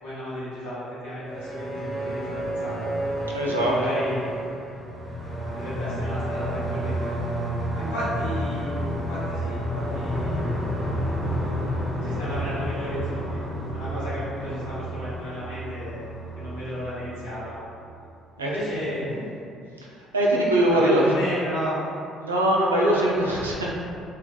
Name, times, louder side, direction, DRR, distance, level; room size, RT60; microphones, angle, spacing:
voice 1, 0.0-2.8 3.5-4.3 5.5-7.2 7.7-10.5 12.0-13.4 13.7-16.0 16.3-17.6 18.4-19.3 20.3-21.8, equal, 85° left, -15 dB, 1.0 m, -33 dB
sound 1, 1.2-18.1, equal, 20° right, 1.1 m, -30 dB
voice 2, 3.3-4.0 18.4-19.0 19.8-19.9 20.1-21.1 22.2-23.7, right 1 dB, 85° right, -3 dB, 0.3 m, -22 dB
3.1 x 2.3 x 2.2 m, 2.4 s
figure-of-eight pair, 50°, 0 cm